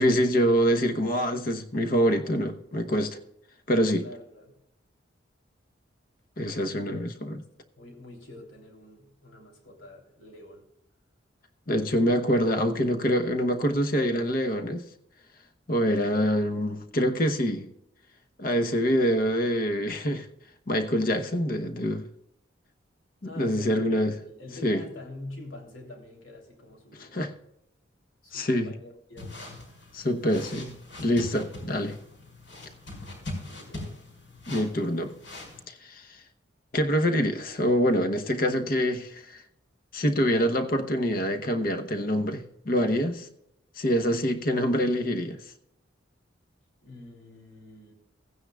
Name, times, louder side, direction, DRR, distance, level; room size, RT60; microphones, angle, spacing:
voice 1, 0.0-3.2 3.7-4.0 6.4-7.3 11.7-14.9 15.7-17.7 18.4-20.3 20.7-22.1 23.4-24.1 24.6-24.8 27.1-27.3 28.3-28.7 29.9-32.0 34.5-35.1 35.7-36.1 36.7-39.4 39.9-43.3 43.8-45.4, equal, 45° left, 1.0 m, -25 dB
voice 2, 4.0-4.6 6.4-7.0 7.4-7.5 7.8-10.7 23.2-27.2 28.2-29.4 33.6-33.9 46.8-47.9, left 2 dB, 85° left, 3.3 m, -45 dB
sound 1, 29.2-35.6, left 2 dB, 70° left, 4.8 m, -42 dB
16.5 x 9.6 x 2.3 m
head